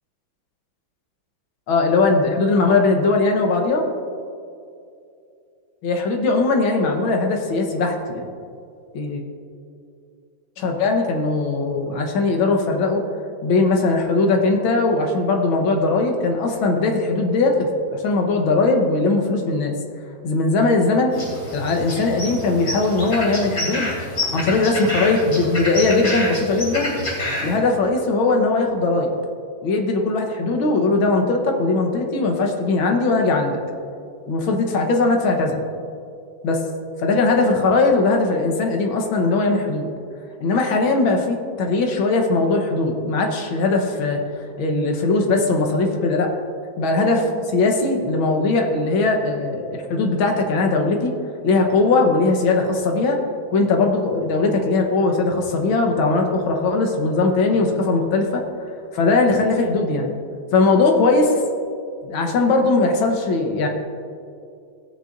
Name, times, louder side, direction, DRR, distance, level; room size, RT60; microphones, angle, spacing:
voice 1, 1.7-3.8 5.8-8.3 8.9-9.2 10.6-13.0 13.4-19.7 20.2-21.1 21.5-23.9 24.3-26.9 27.4-29.1 29.6-33.6 34.3-35.6 36.4-36.6 37.0-39.9 40.4-44.2 44.6-46.3 46.8-51.1 51.4-53.2 53.5-58.4 58.9-60.1 60.5-61.4 62.0-63.7, left 3 dB, 85° left, 3 dB, 1.9 m, -19 dB
sound 1, 21.1-27.6, left 1 dB, 45° left, 3.3 m, -28 dB
16.5 x 8.6 x 2.6 m, 2.5 s
omnidirectional pair, 2.2 m